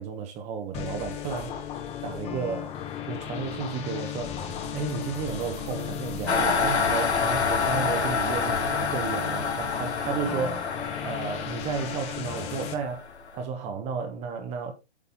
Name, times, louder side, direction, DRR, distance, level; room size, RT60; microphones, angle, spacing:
voice 1, 0.0-1.5 2.0-2.7 3.1-14.7, right 6 dB, 20° right, 1.1 m, -33 dB
sound 1, 0.7-12.7, left 9 dB, 20° left, 1.1 m, -36 dB
sound 2, 4.1-9.9, left 3 dB, 45° left, 2.5 m, -45 dB
sound 3, 6.3-13.3, left 5 dB, 80° left, 1.4 m, -28 dB
8.5 x 5.4 x 3.6 m
figure-of-eight pair, 125°, 33 cm